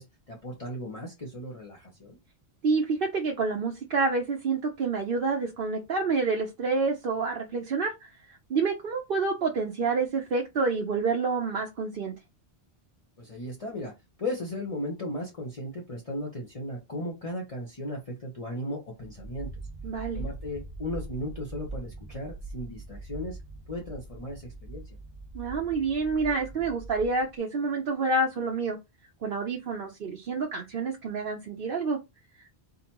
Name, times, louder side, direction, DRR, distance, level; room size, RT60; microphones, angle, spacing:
voice 1, 0.0-2.2 13.2-13.9 14.2-19.5 20.1-23.4 23.7-24.8, left 1 dB, 35° left, 1.1 m, -36 dB
voice 2, 2.6-12.1 19.8-20.2 25.3-28.8 29.2-32.0, right 4 dB, 60° right, 0.9 m, -28 dB
sound 1, 19.0-27.4, right 2 dB, 30° right, 0.9 m, -42 dB
4.2 x 3.9 x 2.9 m
omnidirectional pair, 1.1 m